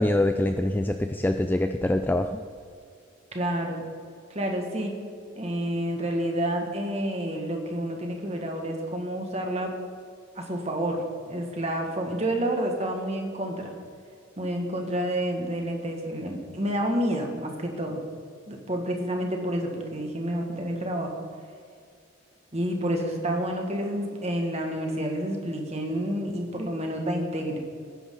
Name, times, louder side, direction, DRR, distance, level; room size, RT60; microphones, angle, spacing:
voice 1, 0.0-2.4, left 1 dB, 10° left, 7 dB, 0.3 m, -24 dB
voice 2, 3.3-3.9 4.3-4.9 5.3-9.8 10.3-13.7 14.4-18.0 18.5-21.2 22.5-27.6, right 1 dB, 30° right, 2 dB, 1.8 m, -29 dB
19.0 x 10.0 x 3.9 m, 2.3 s
head